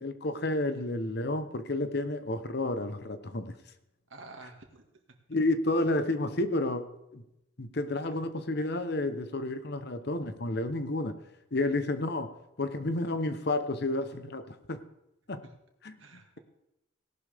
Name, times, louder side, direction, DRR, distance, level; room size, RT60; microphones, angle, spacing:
voice 1, 0.0-3.5 5.3-6.8 7.1-7.2 7.6-11.1 11.5-12.3 12.6-14.8 15.3-15.4 15.8-15.9, left 2 dB, 55° left, 10 dB, 0.9 m, -30 dB
voice 2, 4.1-5.2 16.0-16.4, right 3 dB, 75° right, 4 dB, 2.0 m, -50 dB
17.5 x 11.5 x 3.5 m, 0.88 s
head